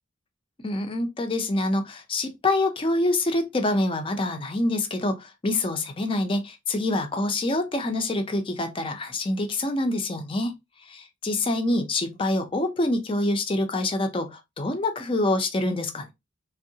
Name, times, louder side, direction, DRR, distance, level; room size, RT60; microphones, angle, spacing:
voice 1, 0.6-10.5 10.9-16.1, left 2 dB, 25° left, 0.5 m, -26 dB
3.5 x 2.0 x 2.7 m
head